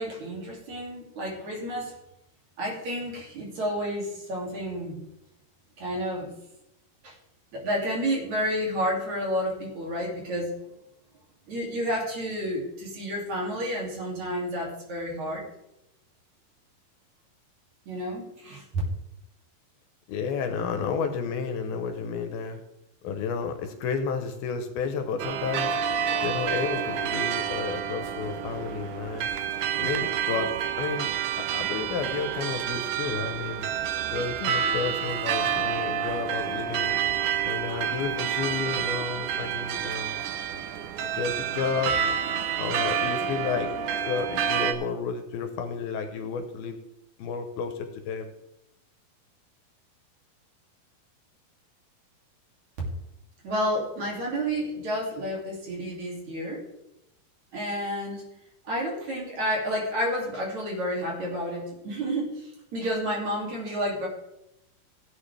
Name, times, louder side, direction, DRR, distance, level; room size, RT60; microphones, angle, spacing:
voice 1, 0.0-1.9 2.6-5.0 5.8-6.3 7.0-7.1 7.5-10.5 11.5-15.4 17.9-18.6 53.4-56.7 57.5-58.3 58.7-64.1, equal, 50° right, -3 dB, 3.8 m, -30 dB
voice 2, 20.1-22.6 23.0-25.8 26.2-29.3 29.8-30.5 30.8-31.1 31.4-33.7 34.1-37.0 37.4-40.2 40.5-40.7 41.1-42.0 42.6-43.7 44.1-46.8 47.2-48.3, left 5 dB, 75° left, 6 dB, 2.7 m, -31 dB
sound 1, 25.2-44.7, right 8 dB, 75° right, 1.9 m, -29 dB
16.0 x 9.5 x 3.4 m, 0.86 s
omnidirectional pair, 4.6 m